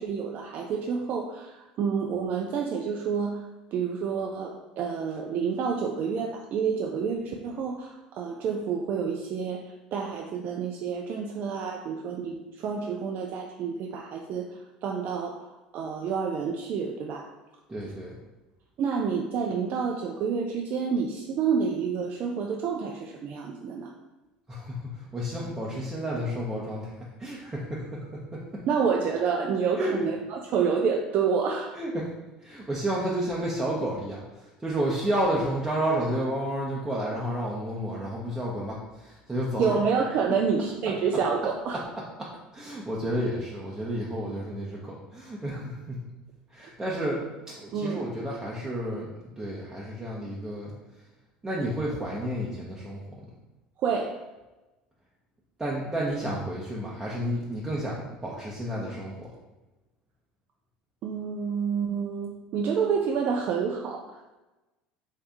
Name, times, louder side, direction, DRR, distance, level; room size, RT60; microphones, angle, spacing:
voice 1, 0.0-3.5 3.7-17.3 18.8-23.9 28.7-31.8 39.6-41.8 47.7-48.0 53.8-54.2 61.0-64.2, right 6 dB, 50° right, 1 dB, 0.4 m, -29 dB
voice 2, 17.7-18.2 24.5-28.1 28.3-28.6 29.7-30.1 31.7-32.1 32.4-40.1 40.8-46.0 46.5-51.1 51.4-53.0 55.6-59.3, equal, 15° right, -5 dB, 0.7 m, -31 dB
3.3 x 2.7 x 3.4 m, 1.1 s
hypercardioid pair, 75°, 4 cm